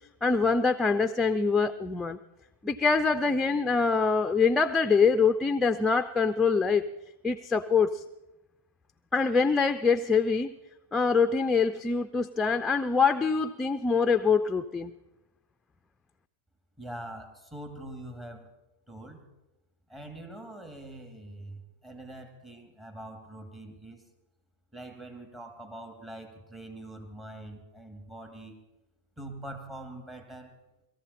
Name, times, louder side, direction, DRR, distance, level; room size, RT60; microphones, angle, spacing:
voice 1, 0.2-2.2 2.6-6.8 7.2-8.0 9.1-10.5 10.9-14.9, left 5 dB, 10° left, 9 dB, 0.5 m, -24 dB
voice 2, 16.8-18.5 18.9-19.2 19.9-24.0 24.7-28.6 29.2-30.6, right 1 dB, 15° right, 4 dB, 2.4 m, -44 dB
19.0 x 14.0 x 4.3 m, 0.96 s
hypercardioid pair, 115°, 0 cm